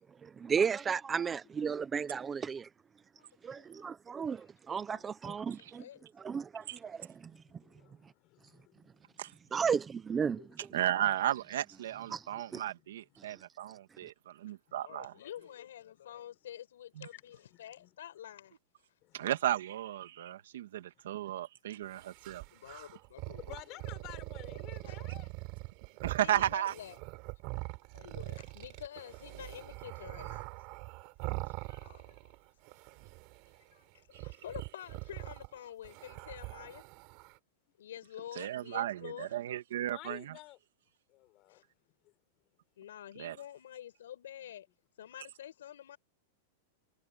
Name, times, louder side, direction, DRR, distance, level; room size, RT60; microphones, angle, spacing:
voice 1, 0.2-2.7 3.4-5.8 6.2-7.3 9.5-10.4 12.1-12.2 12.5-12.6, right 6 dB, 10° right, 0.6 m, -34 dB
voice 2, 3.6-3.9 4.9-6.0 14.8-18.6 22.5-23.8 24.5-24.6 24.8-25.0 26.2-27.0 27.9-30.5 31.6-32.3 33.7-36.8 37.8-39.3 41.5-41.6 42.8-44.7 45.0-46.0, left 11 dB, 90° left, 5.6 m, -48 dB
voice 3, 6.8-9.6 10.4-10.6 12.3-13.0 13.7-13.8 14.7-14.8 15.2-15.3 17.1-17.9 19.0-19.3 23.4-25.3 33.5-33.6 39.8-40.6 41.1-41.7 42.0-42.1, left 19 dB, 30° left, 4.0 m, -53 dB
voice 4, 10.7-15.1 17.0-17.1 19.1-22.4 26.0-26.7 34.1-34.2 38.4-40.3 43.2-43.4, right 12 dB, 70° right, 2.1 m, -34 dB
sound 1, 21.9-32.4 32.6-33.6 34.1-37.4, right 26 dB, 35° right, 4.4 m, -43 dB
supercardioid pair, 180°, 0 cm